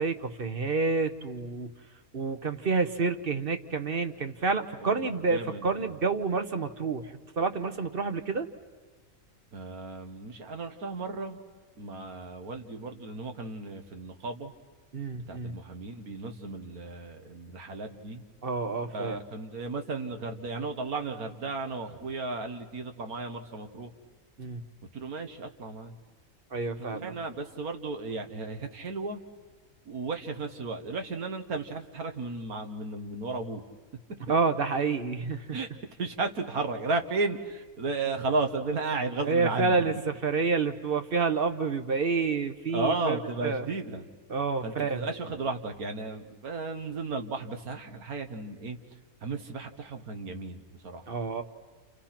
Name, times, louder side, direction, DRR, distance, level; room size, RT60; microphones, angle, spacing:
voice 1, 0.0-1.7 2.1-7.1 7.4-8.5 14.9-15.5 18.4-19.2 24.4-24.6 26.5-27.1 34.3-35.5 39.2-43.7 44.3-45.0 51.1-51.4, right 4 dB, 40° right, 8 dB, 1.2 m, -28 dB
voice 2, 4.8-5.8 9.5-11.4 11.8-14.5 15.1-18.2 18.9-23.9 24.9-25.9 26.9-29.2 29.9-33.6 35.5-35.7 36.0-39.8 42.7-44.0 44.6-48.8 49.2-51.2, right 3 dB, 80° right, 6 dB, 2.0 m, -34 dB
30.0 x 29.5 x 5.9 m, 1.3 s
omnidirectional pair, 1.5 m